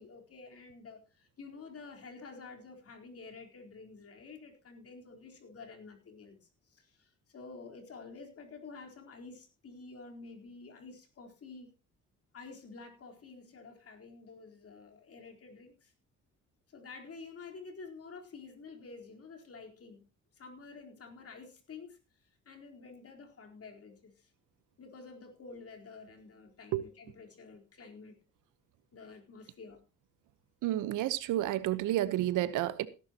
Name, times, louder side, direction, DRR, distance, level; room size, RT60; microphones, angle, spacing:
voice 1, 0.0-11.7 12.3-15.9 16.7-20.1 20.3-22.0 22.5-24.3 24.8-28.2 28.9-29.8, left 4 dB, 50° left, 4.2 m, -50 dB
voice 2, 30.6-32.9, right 13 dB, 90° right, 1.1 m, -30 dB
17.5 x 11.0 x 3.0 m
cardioid pair, 90°, 30 cm